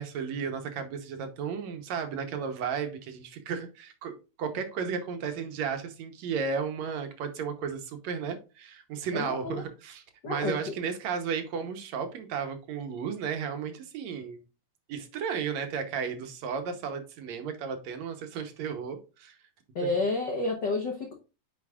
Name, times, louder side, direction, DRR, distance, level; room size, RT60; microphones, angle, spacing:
voice 1, 0.0-14.4 14.9-19.4, right 6 dB, 70° right, 7 dB, 2.1 m, -34 dB
voice 2, 9.1-9.6 10.2-10.5 19.7-21.1, left 3 dB, 70° left, 2 dB, 1.0 m, -30 dB
9.5 x 5.2 x 2.4 m, 0.31 s
omnidirectional pair, 3.5 m